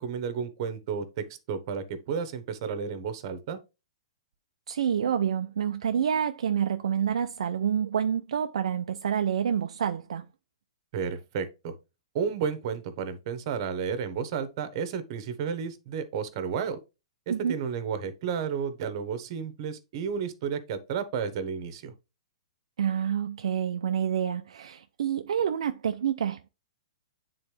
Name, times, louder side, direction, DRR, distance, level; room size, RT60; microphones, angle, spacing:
voice 1, 0.0-3.6 10.9-11.8 12.1-16.8 17.3-21.9, right 6 dB, 50° right, 1.1 m, -32 dB
voice 2, 4.7-10.2 17.3-17.6 22.8-26.5, right 8 dB, 75° right, 0.5 m, -28 dB
8.7 x 3.9 x 3.3 m
hypercardioid pair, 135°, 3 cm